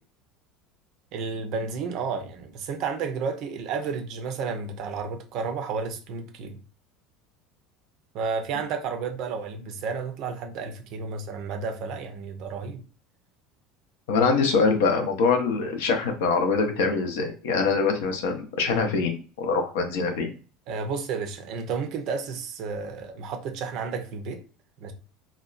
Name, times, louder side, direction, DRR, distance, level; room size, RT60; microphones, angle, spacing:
voice 1, 1.1-6.6 8.1-12.8 18.7-18.9 20.7-24.4 24.8-24.9, right 5 dB, 50° right, 0.5 m, -32 dB
voice 2, 14.1-20.3, left 4 dB, 60° left, 0.5 m, -24 dB
2.8 x 2.2 x 2.4 m
figure-of-eight pair, 70°, 0 cm